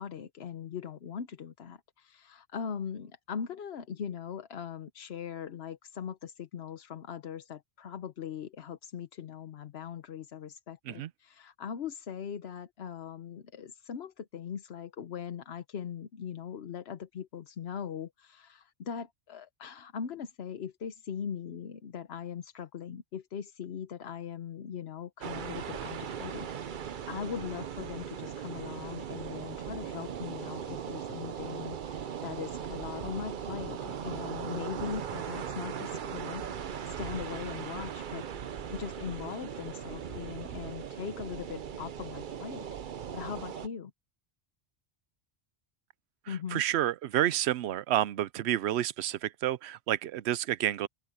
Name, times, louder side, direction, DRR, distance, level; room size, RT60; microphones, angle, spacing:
voice 1, 0.0-38.2 38.7-43.9 46.3-46.6, left 8 dB, 80° left, 1.1 m, -40 dB
sound 1, 25.2-43.7, right 8 dB, 55° right, 0.8 m, -39 dB
voice 2, 46.5-50.9, right 12 dB, 85° right, 0.8 m, -29 dB
open air
omnidirectional pair, 1.1 m